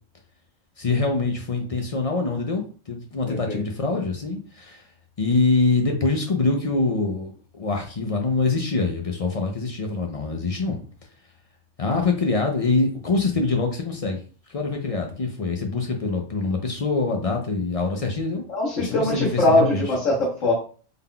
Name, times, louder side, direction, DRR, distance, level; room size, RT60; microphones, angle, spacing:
voice 1, 0.8-4.8 5.2-10.8 11.8-14.2 14.5-18.4 18.8-19.8, left 3 dB, 50° left, 2 dB, 0.4 m, -24 dB
voice 2, 3.3-3.6 18.5-20.5, left 2 dB, 80° left, -5 dB, 1.4 m, -21 dB
3.7 x 3.6 x 2.2 m, 0.39 s
omnidirectional pair, 1.3 m